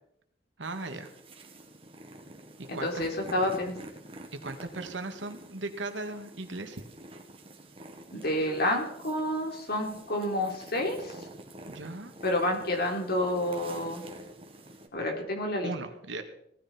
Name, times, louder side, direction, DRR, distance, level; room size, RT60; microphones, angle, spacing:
sound 1, 0.6-14.9, right 1 dB, 30° right, 2.1 m, -48 dB
voice 1, 0.6-1.1 2.6-3.0 4.3-6.8 11.7-12.1 15.6-16.2, right 2 dB, 85° right, 6 dB, 2.0 m, -37 dB
voice 2, 2.7-3.8 8.1-11.3 12.2-14.0 14.9-15.7, left 1 dB, 60° left, 2 dB, 3.7 m, -29 dB
18.0 x 14.5 x 4.5 m, 0.72 s
head